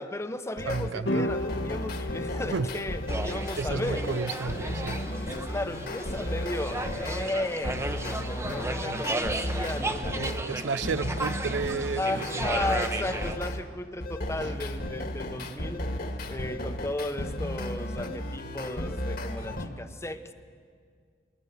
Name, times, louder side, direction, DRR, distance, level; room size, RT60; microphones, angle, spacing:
voice 1, 0.0-4.1 4.6-10.4 12.0-20.3, left 1 dB, 15° left, 9 dB, 0.9 m, -35 dB
sound 1, 0.6-0.9 1.3-7.2 7.6-13.6 14.0-19.7, left 1 dB, 55° left, 1.7 m, -34 dB
voice 2, 0.6-1.3 2.5-2.7 3.5-5.0 10.2-12.5, right 4 dB, 80° right, 16 dB, 0.5 m, -32 dB
sound 2, 1.1-9.5, equal, 75° left, 1.3 m, -38 dB
sound 3, 3.1-13.4, right 2 dB, 15° right, 0.8 m, -34 dB
22.5 x 19.5 x 8.1 m, 2.1 s
head